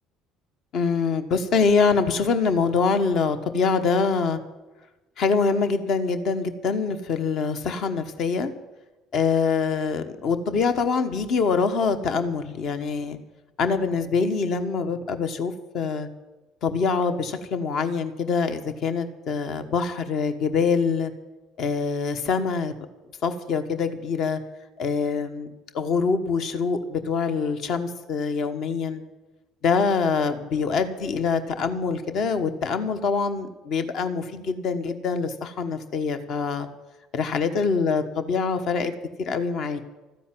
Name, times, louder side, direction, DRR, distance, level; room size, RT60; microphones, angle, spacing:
voice 1, 0.7-4.4 5.2-8.5 9.1-13.2 13.6-16.1 16.6-21.1 21.6-22.7 23.2-24.4 24.8-29.0 29.6-36.7 37.1-38.9 39.2-39.8, left 5 dB, 50° left, 9 dB, 1.2 m, -24 dB
14.0 x 9.9 x 7.8 m, 1.1 s
figure-of-eight pair, 55°, 0 cm